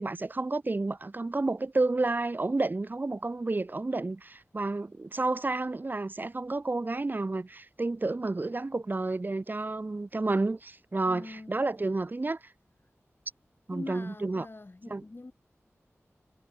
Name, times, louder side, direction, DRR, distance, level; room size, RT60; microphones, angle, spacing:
voice 1, 0.0-12.4 13.7-14.5 14.9-15.0, right 2 dB, 40° right, 0.6 m, -30 dB
voice 2, 11.1-11.5 13.7-15.3, left 2 dB, 45° left, 2.2 m, -43 dB
wide cardioid pair, 60°, 5 cm